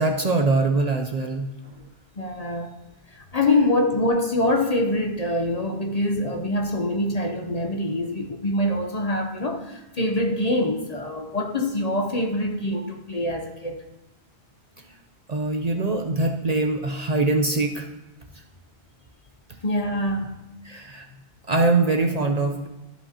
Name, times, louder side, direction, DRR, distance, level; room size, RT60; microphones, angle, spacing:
voice 1, 0.0-1.7 15.3-17.9 20.6-21.1 21.5-22.7, right 3 dB, 45° right, 0.6 m, -23 dB
voice 2, 2.2-2.8 3.1-13.8 19.6-20.4, left 1 dB, 40° left, 0.7 m, -25 dB
13.5 x 5.4 x 2.8 m
omnidirectional pair, 1.1 m